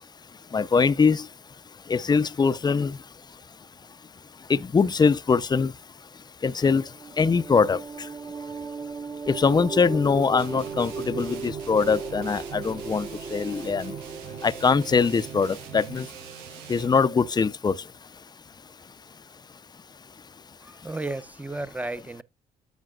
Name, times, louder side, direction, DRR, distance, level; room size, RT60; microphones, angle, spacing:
voice 1, 0.5-1.2 1.9-3.0 4.5-5.7 6.4-6.8 7.2-7.8 9.3-13.9 14.4-16.1 16.7-17.7, left 5 dB, 25° left, 0.6 m, -22 dB
sound 1, 6.8-17.0, right 5 dB, 40° right, 1.5 m, -37 dB
sound 2, 10.4-17.0, right 13 dB, 90° right, 0.7 m, -43 dB
voice 2, 20.6-22.2, right 2 dB, 10° right, 0.8 m, -33 dB
13.0 x 5.2 x 2.4 m
supercardioid pair, 70°, 16 cm